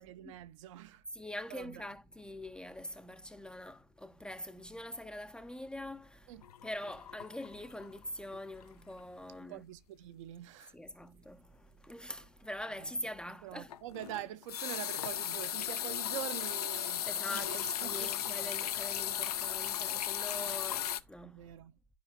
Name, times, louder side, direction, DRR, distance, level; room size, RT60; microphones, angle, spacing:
voice 1, 0.0-1.0 1.5-1.9 6.3-6.4 9.5-10.8 12.7-12.9 13.4-18.6 20.4-20.5 21.2-21.8, right 13 dB, 50° right, 0.7 m, -45 dB
voice 2, 1.1-6.3 6.6-9.6 10.7-13.7 17.0-21.5, left 1 dB, 5° left, 0.5 m, -44 dB
sound 1, 6.4-8.0 8.3-8.6 9.0-9.1 13.7-21.0, left 10 dB, 70° left, 0.6 m, -36 dB
12.5 x 4.8 x 2.3 m
figure-of-eight pair, 100°, 20 cm